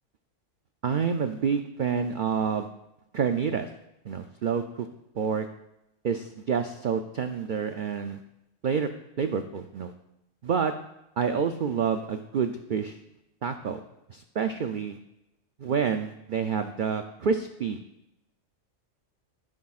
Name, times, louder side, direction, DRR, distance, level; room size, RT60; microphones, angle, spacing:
voice 1, 0.8-2.7 3.1-3.7 4.0-4.9 5.2-5.5 6.0-8.2 8.6-8.9 9.2-9.9 10.4-10.7 11.2-13.0 13.4-13.8 14.1-15.0 15.6-17.8, right 6 dB, 75° right, 7 dB, 0.4 m, -28 dB
12.5 x 9.8 x 2.4 m, 0.88 s
omnidirectional pair, 1.4 m